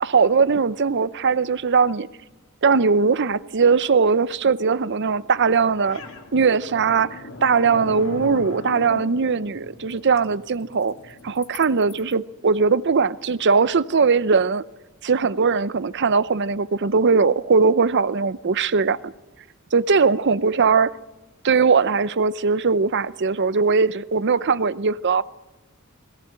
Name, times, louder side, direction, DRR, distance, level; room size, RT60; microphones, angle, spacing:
voice 1, 0.0-2.1 2.6-6.0 6.3-10.9 11.2-14.6 15.0-19.1 19.7-20.9 21.4-25.2, right 5 dB, 55° right, 0.7 m, -20 dB
sound 1, 5.1-12.1, left 3 dB, 65° left, 2.2 m, -40 dB
21.5 x 17.5 x 8.9 m
head